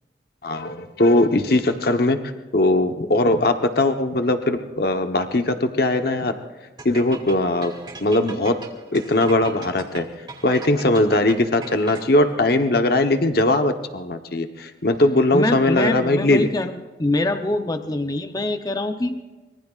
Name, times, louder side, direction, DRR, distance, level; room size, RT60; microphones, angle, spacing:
voice 1, 0.4-2.2 2.5-6.3 6.8-7.7 8.0-8.5 8.9-10.0 10.4-16.5, left 2 dB, 55° left, 6 dB, 1.0 m, -20 dB
sound 1, 6.8-12.3, right 3 dB, 25° right, 2.5 m, -39 dB
voice 2, 15.3-19.2, left 2 dB, 20° left, 7 dB, 0.7 m, -24 dB
25.5 x 23.0 x 2.5 m, 1.2 s
head